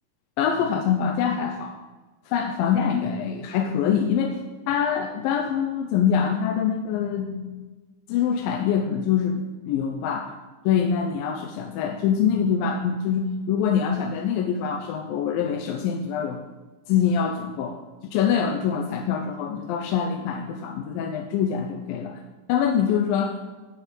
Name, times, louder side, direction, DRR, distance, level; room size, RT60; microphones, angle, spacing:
voice 1, 0.4-1.8 2.3-4.4 4.7-7.7 8.1-10.3 10.7-16.4 16.9-22.2 22.5-23.4, left 7 dB, 90° left, 4 dB, 2.6 m, -24 dB
11.5 x 8.4 x 7.3 m, 1.3 s
omnidirectional pair, 4.0 m